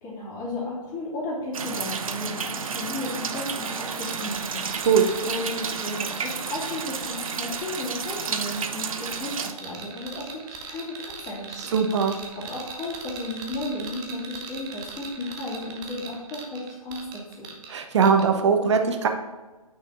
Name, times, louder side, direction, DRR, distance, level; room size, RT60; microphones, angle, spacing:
voice 1, 0.0-4.7 5.2-11.9 12.4-17.5, left 2 dB, 20° left, -6 dB, 2.8 m, -34 dB
sound 1, 1.5-9.5, right 5 dB, 65° right, 0.8 m, -31 dB
sound 2, 3.1-17.7 18.0-18.3, right 6 dB, 20° right, 1.0 m, -40 dB
voice 2, 11.7-12.1 17.7-19.1, right 6 dB, 50° right, 5 dB, 1.2 m, -20 dB
8.9 x 6.2 x 3.6 m, 1.2 s
figure-of-eight pair, 135°, 19 cm